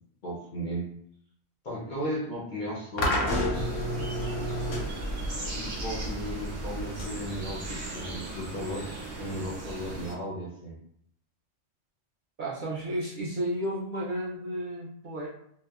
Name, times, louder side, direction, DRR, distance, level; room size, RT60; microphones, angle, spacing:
voice 1, 0.2-0.9 1.6-3.7 5.5-8.9 9.2-10.7, equal, 55° left, -5 dB, 0.5 m, -35 dB
sound 1, 3.0-10.1, equal, 85° left, 0.9 m, -32 dB
sound 2, 3.5-10.1, right 2 dB, 75° right, 1.0 m, -39 dB
voice 2, 12.4-15.3, right 1 dB, 60° right, -6 dB, 0.5 m, -32 dB
2.7 x 2.0 x 2.3 m, 0.69 s
omnidirectional pair, 1.3 m